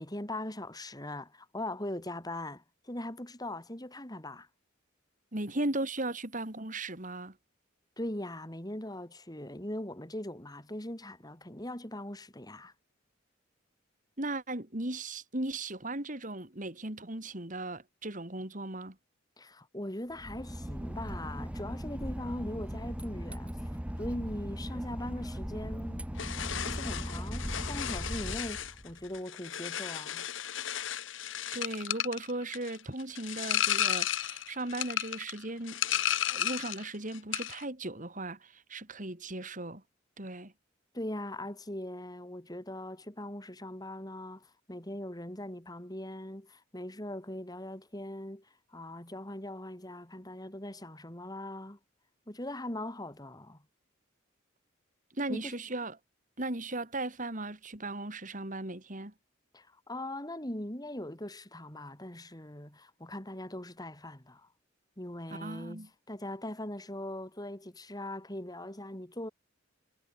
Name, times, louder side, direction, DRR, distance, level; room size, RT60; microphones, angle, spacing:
voice 1, 0.0-4.5 8.0-12.7 19.4-23.7 24.0-26.1 26.6-30.3 40.9-48.5 48.7-51.8 52.3-53.6 55.3-55.5 59.5-64.5 65.0-69.3, left 1 dB, 20° left, 3.8 m, -40 dB
voice 2, 5.3-7.4 14.2-19.0 31.5-35.8 36.3-39.8 40.2-40.5 55.1-56.0 56.4-59.1 65.3-65.9, right 2 dB, 40° right, 3.6 m, -37 dB
Boat Water vehicle / Engine, 20.1-29.1, equal, 5° right, 0.9 m, -38 dB
sound 1, 26.2-36.9 37.1-37.6, left 10 dB, 70° left, 1.2 m, -34 dB
head